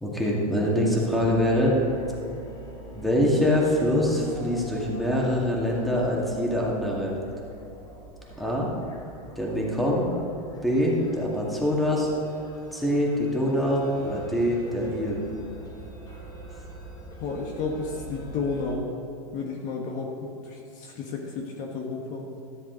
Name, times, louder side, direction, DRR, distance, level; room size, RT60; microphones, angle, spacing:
voice 1, 0.0-1.8 2.9-7.2 8.4-8.7 9.4-10.1 10.6-12.1 12.7-15.2, equal, ahead, -4 dB, 2.1 m, -24 dB
sound 1, 1.1-18.7, right 1 dB, 20° left, 2.2 m, -44 dB
voice 2, 17.2-18.9 19.3-20.1 20.4-22.4, left 4 dB, 45° left, 0 dB, 1.3 m, -32 dB
13.5 x 7.3 x 4.0 m, 2.9 s
hypercardioid pair, 115°, 19 cm